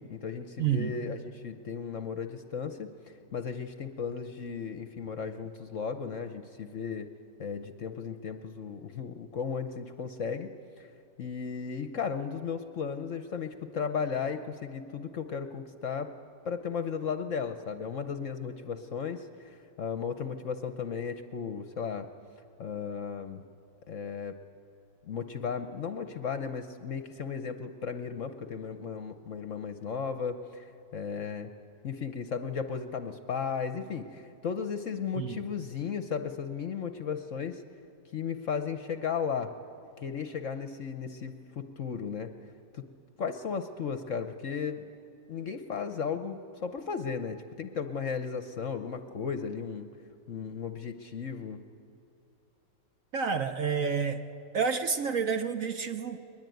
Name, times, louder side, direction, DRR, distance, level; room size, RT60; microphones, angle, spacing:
voice 1, 0.0-7.1 7.4-10.5 10.8-10.9 11.2-16.1 16.4-22.1 22.6-23.4 23.9-24.4 25.0-31.5 31.8-37.6 38.1-39.5 40.0-42.3 42.7-42.9 43.2-44.8 45.3-49.9 50.3-51.6, left 6 dB, 55° left, 9 dB, 1.0 m, -35 dB
voice 2, 0.6-0.9 35.2-35.4 53.1-54.2 54.5-56.2, right 6 dB, 55° right, 8 dB, 1.1 m, -29 dB
21.5 x 21.5 x 9.3 m, 2.6 s
omnidirectional pair, 1.9 m